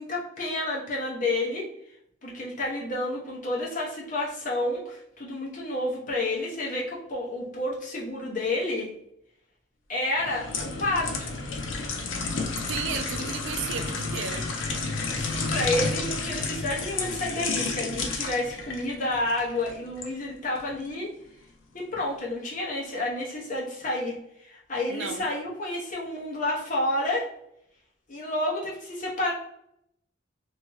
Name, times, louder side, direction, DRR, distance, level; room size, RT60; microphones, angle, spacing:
voice 1, 0.0-1.7 2.2-8.9 9.9-11.3 15.1-21.1 21.7-27.3 28.1-29.3, left 1 dB, 40° left, 0.9 m, -30 dB
sound 1, 10.1-20.1 20.5-20.7, left 3 dB, 75° left, 0.6 m, -31 dB
voice 2, 12.7-14.5 24.9-25.3, right 7 dB, 70° right, 0.4 m, -34 dB
3.1 x 2.7 x 2.9 m
head